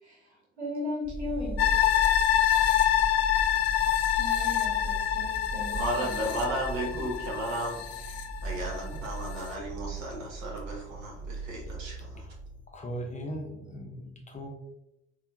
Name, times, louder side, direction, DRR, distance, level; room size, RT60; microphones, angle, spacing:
voice 1, 0.0-1.7 4.0-6.2, left 1 dB, 85° right, -3 dB, 1.0 m, -37 dB
sound 1, 1.0-12.7, right 1 dB, 5° right, 0.3 m, -38 dB
sound 2, 1.6-8.9 9.3-9.4, left 11 dB, 70° left, 0.5 m, -26 dB
voice 2, 5.8-7.8 8.4-12.2, right 1 dB, 55° right, -2 dB, 1.3 m, -34 dB
voice 3, 12.7-14.5, equal, 20° left, 1 dB, 0.7 m, -38 dB
4.2 x 2.4 x 2.5 m, 0.89 s
figure-of-eight pair, 55°, 33 cm